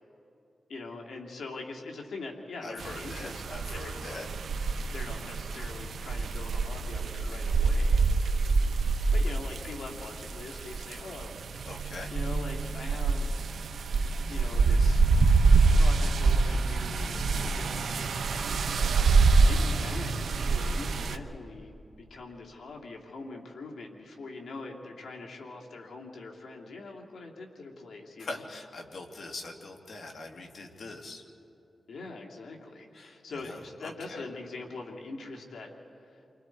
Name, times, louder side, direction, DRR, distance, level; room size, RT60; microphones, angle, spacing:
voice 1, 0.7-3.4 3.7-4.2 4.9-8.0 9.1-11.3 12.1-13.3 14.3-15.0 15.8-18.9 19.4-20.1 20.5-28.4 31.9-35.7 36.0-36.2, left 3 dB, 85° left, -1 dB, 2.7 m, -43 dB
voice 2, 2.6-4.3 11.7-12.1 28.2-31.2 32.9-33.2 33.5-33.6 33.8-34.2, left 2 dB, 65° left, 2 dB, 2.7 m, -42 dB
sound 1, 2.8-21.2, right 4 dB, 85° right, 1.0 m, -26 dB
29.5 x 25.0 x 4.7 m, 2.8 s
cardioid pair, 80°, 0 cm